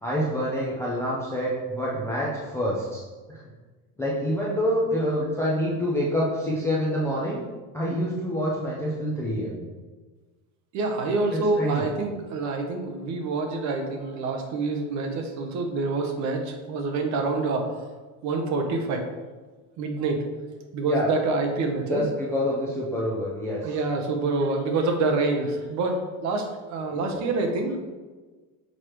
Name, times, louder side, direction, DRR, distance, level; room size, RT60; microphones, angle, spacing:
voice 1, 0.0-3.0 3.3-3.4 4.0-7.4 7.7-9.5 11.3-11.9 20.8-21.1 21.8-23.7 26.9-27.2 27.5-27.6, equal, 5° left, -6 dB, 0.4 m, -27 dB
voice 2, 10.7-17.8 18.2-19.0 19.8-20.2 20.7-22.0 23.6-27.8, right 3 dB, 40° right, 4 dB, 0.8 m, -27 dB
6.5 x 4.8 x 3.0 m, 1.3 s
cardioid pair, 170°, 43 cm